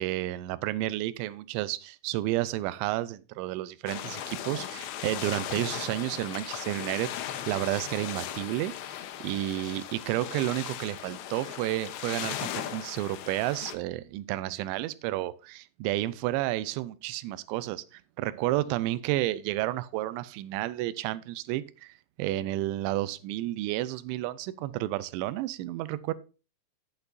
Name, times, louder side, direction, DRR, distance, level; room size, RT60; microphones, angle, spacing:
voice 1, 0.0-7.1 7.5-8.7 9.2-21.9 22.2-26.1, right 15 dB, 85° right, 2.8 m, -31 dB
sound 1, 3.9-13.8, left 11 dB, 75° left, 2.9 m, -38 dB
12.0 x 8.1 x 2.5 m
omnidirectional pair, 5.6 m